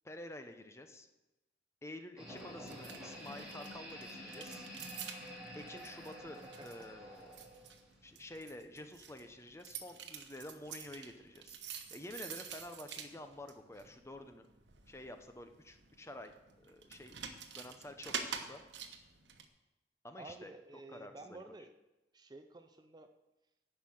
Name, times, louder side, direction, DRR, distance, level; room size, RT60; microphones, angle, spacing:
voice 1, 0.0-1.1 1.8-4.7 5.5-7.5 8.0-14.5 14.9-17.2 17.5-18.6 20.0-20.5 20.9-21.4, left 1 dB, 15° left, 7 dB, 0.7 m, -50 dB
sound 1, 2.2-8.2, equal, 5° right, 2.8 m, -49 dB
sound 2, 2.4-19.4, right 7 dB, 85° right, 1.0 m, -49 dB
voice 2, 20.2-21.7 22.1-23.1, right 2 dB, 25° right, 7 dB, 0.5 m, -52 dB
11.0 x 5.6 x 7.7 m, 1.0 s
head